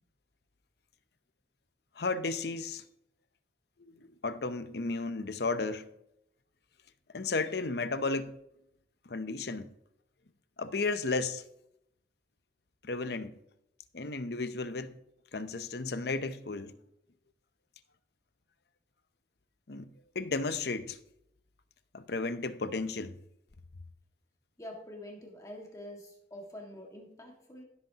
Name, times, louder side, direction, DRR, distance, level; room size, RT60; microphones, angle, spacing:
voice 1, 2.0-2.8 3.8-5.9 7.1-8.4 9.1-9.7 10.6-11.4 12.8-13.4 13.9-15.0 15.3-16.7 19.7-19.9 20.1-21.0 21.9-23.2, left 3 dB, 60° left, 0.7 m, -33 dB
voice 2, 24.6-27.6, left 1 dB, 15° left, 1.8 m, -46 dB
16.0 x 7.9 x 2.9 m
head